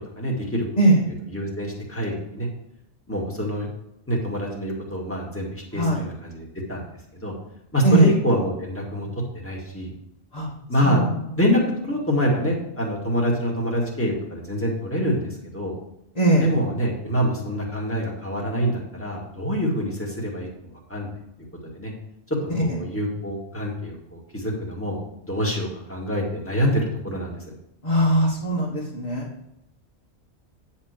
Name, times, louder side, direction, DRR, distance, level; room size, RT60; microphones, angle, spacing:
voice 1, 0.2-0.6 1.3-2.5 3.1-3.7 4.1-6.8 7.1-7.3 7.7-9.1 9.3-9.9 10.7-11.0 11.4-15.7 16.4-21.1 21.7-21.9 22.3-27.4, equal, 10° left, -3 dB, 2.0 m, -26 dB
voice 2, 5.7-6.0 7.8-8.1 10.3-10.5 10.8-11.2 16.1-16.5 22.5-22.8 27.8-29.3, right 1 dB, 35° left, -6 dB, 1.6 m, -20 dB
9.7 x 4.4 x 6.6 m, 0.81 s
omnidirectional pair, 1.2 m